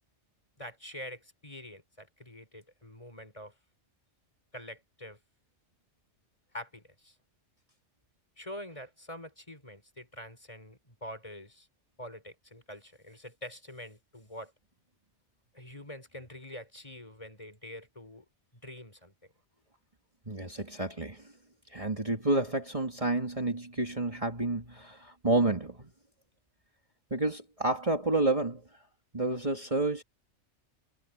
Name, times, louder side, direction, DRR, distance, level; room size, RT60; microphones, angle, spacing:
voice 1, 0.6-3.5 4.5-5.2 6.5-7.1 8.4-11.7 12.0-14.5 15.5-18.2 18.5-19.1, equal, 25° left, 4.5 m, -45 dB
voice 2, 20.3-21.3 21.7-25.9 27.1-28.6 29.1-30.0, right 2 dB, 30° right, 2.5 m, -30 dB
omnidirectional pair, 1.2 m